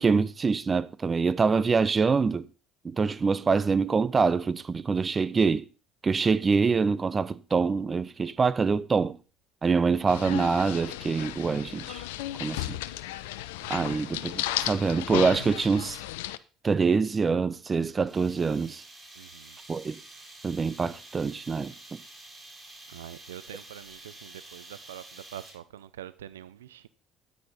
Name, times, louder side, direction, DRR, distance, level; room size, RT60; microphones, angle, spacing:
voice 1, 0.0-2.5 2.8-5.6 6.0-9.2 9.6-12.0 12.4-12.8 13.7-16.0 16.6-18.8 19.7-20.0 20.4-21.7, right 5 dB, 30° right, 0.8 m, -25 dB
sound 1, 10.1-16.4, left 15 dB, 75° left, 0.6 m, -34 dB
voice 2, 13.6-14.0 19.1-19.6 22.9-26.9, right 11 dB, 80° right, 0.5 m, -45 dB
sound 2, 18.1-25.8, right 2 dB, 15° right, 4.5 m, -49 dB
13.0 x 9.9 x 4.1 m
hypercardioid pair, 60°, 0 cm